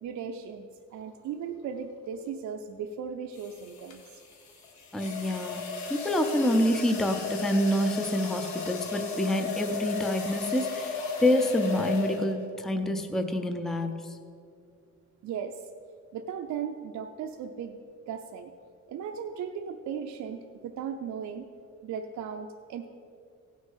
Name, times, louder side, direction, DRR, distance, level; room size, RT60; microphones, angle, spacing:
voice 1, 0.0-4.2 15.2-15.7 16.1-17.8 18.1-18.5 18.9-21.5 21.8-22.9, right 7 dB, 70° right, 3 dB, 0.6 m, -37 dB
sound 1, 1.4-1.7 3.4-12.6, left 5 dB, 75° left, 1.6 m, -35 dB
voice 2, 4.9-5.6 5.9-14.2, left 1 dB, ahead, 7 dB, 0.5 m, -27 dB
16.5 x 6.3 x 5.5 m, 2.4 s
cardioid pair, 175°, 29 cm